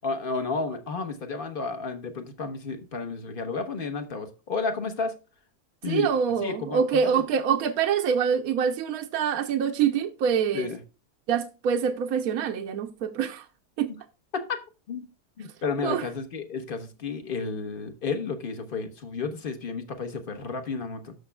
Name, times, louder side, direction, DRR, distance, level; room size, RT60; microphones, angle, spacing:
voice 1, 0.0-5.2 5.8-6.1 6.4-7.2 10.5-10.8 14.3-14.6 14.9-15.1 15.4-21.1, left 4 dB, 40° left, 1.1 m, -32 dB
voice 2, 5.9-10.7 11.3-13.4 13.8-13.9 15.8-16.0, right 7 dB, 70° right, 1.1 m, -25 dB
13.0 x 5.9 x 2.2 m
omnidirectional pair, 1.7 m